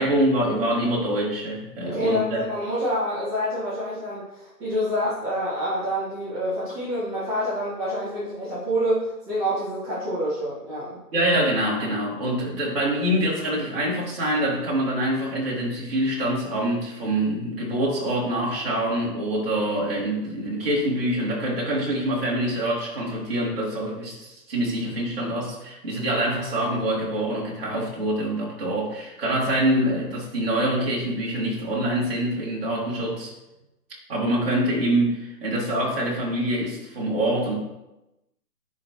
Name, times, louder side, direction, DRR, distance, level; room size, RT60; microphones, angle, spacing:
voice 1, 0.0-2.4 11.1-33.3 34.1-37.6, right 1 dB, 35° right, -4 dB, 2.2 m, -25 dB
voice 2, 1.8-11.0, equal, 15° right, -12 dB, 1.7 m, -27 dB
10.0 x 3.8 x 3.0 m, 0.96 s
hypercardioid pair, 160°, 48 cm